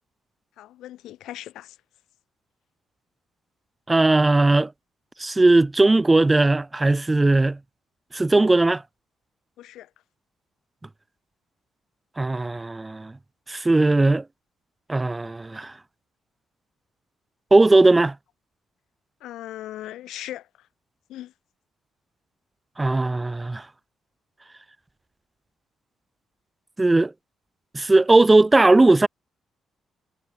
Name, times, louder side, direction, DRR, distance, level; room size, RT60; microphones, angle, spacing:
voice 1, 0.6-1.8 9.6-9.9 19.2-20.7 21.1-21.3, left 13 dB, 85° left, 4.6 m, -38 dB
voice 2, 3.9-4.7 5.2-7.6 8.1-8.8 12.2-13.1 13.5-14.2 14.9-15.7 17.5-18.1 22.8-23.7 26.8-27.1 27.7-29.1, right 2 dB, 15° right, 2.5 m, -18 dB
cardioid pair, 90°, 0 cm